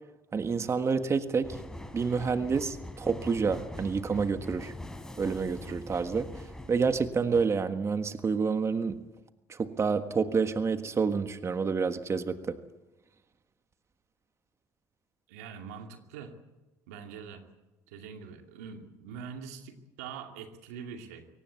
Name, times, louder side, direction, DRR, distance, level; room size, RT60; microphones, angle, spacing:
voice 1, 0.3-1.6 1.9-4.7 5.2-6.3 6.7-9.0 9.5-12.6, right 5 dB, 35° right, 9 dB, 1.6 m, -28 dB
sound 1, 1.4-7.5, left 1 dB, 5° left, 4.2 m, -43 dB
voice 2, 15.3-16.4 16.9-17.4 17.9-21.3, right 6 dB, 90° right, 5 dB, 2.5 m, -43 dB
23.5 x 18.5 x 8.3 m, 1.1 s
supercardioid pair, 70°, 8 cm